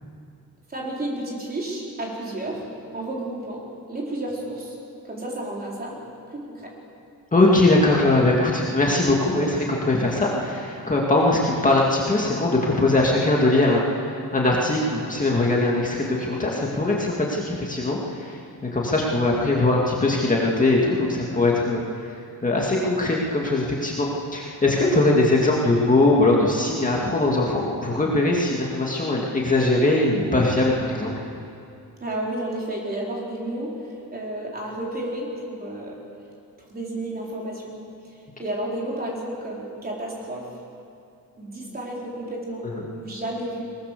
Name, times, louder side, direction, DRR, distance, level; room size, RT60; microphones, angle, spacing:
voice 1, 0.7-2.7 2.9-4.8 5.0-6.0 6.3-6.7 32.0-36.0 36.6-37.6 38.0-40.5 41.4-42.7 42.9-43.6, right 1 dB, 25° right, -3 dB, 4.4 m, -31 dB
voice 2, 7.3-21.8 22.4-31.1 42.7-42.8, left 2 dB, 20° left, -3 dB, 2.2 m, -21 dB
22.0 x 20.0 x 6.8 m, 2.6 s
wide cardioid pair, 165°, 35 cm